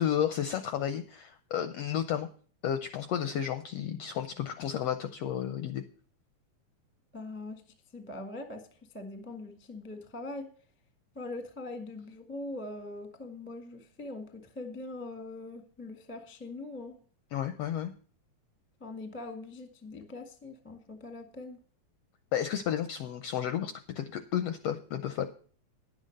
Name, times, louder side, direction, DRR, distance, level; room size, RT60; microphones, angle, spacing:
voice 1, 0.0-2.3 2.6-5.8 17.3-17.9 22.3-25.3, left 9 dB, 80° left, 9 dB, 1.4 m, -32 dB
voice 2, 7.1-7.6 7.9-10.5 11.1-17.0 18.8-21.6, left 2 dB, 15° left, 5 dB, 0.4 m, -42 dB
10.5 x 8.0 x 6.4 m, 0.43 s
omnidirectional pair, 3.5 m